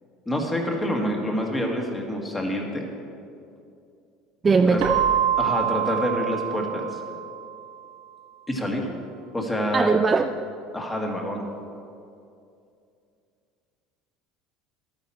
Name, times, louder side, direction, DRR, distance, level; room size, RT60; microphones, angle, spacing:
voice 1, 0.3-2.9 4.7-4.8 5.4-6.9 8.5-8.9 9.3-9.9 10.7-11.4, equal, 10° left, 1 dB, 1.5 m, -27 dB
voice 2, 4.4-5.0 9.7-10.5, right 4 dB, 20° right, 7 dB, 0.3 m, -20 dB
Keyboard (musical), 4.8-7.5, right 10 dB, 75° right, 1.2 m, -25 dB
12.5 x 8.9 x 4.3 m, 2.5 s
cardioid pair, 135°, 0 cm